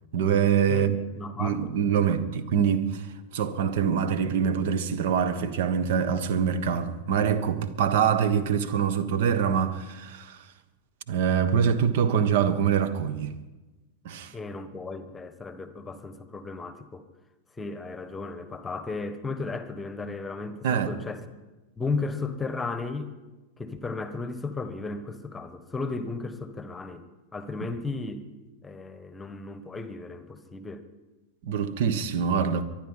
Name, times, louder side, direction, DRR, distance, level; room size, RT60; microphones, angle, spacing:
voice 1, 0.1-0.9 1.4-3.1 3.3-10.5 11.1-13.3 14.0-14.3 20.6-20.9 31.4-32.6, right 7 dB, 55° right, 1.3 m, -24 dB
voice 2, 0.7-2.1 14.3-17.1 17.6-21.3 21.8-23.1 23.6-27.1 27.3-28.2 28.6-30.9, left 3 dB, 10° left, 1.3 m, -35 dB
23.5 x 10.5 x 5.7 m
figure-of-eight pair, 90°, 0 cm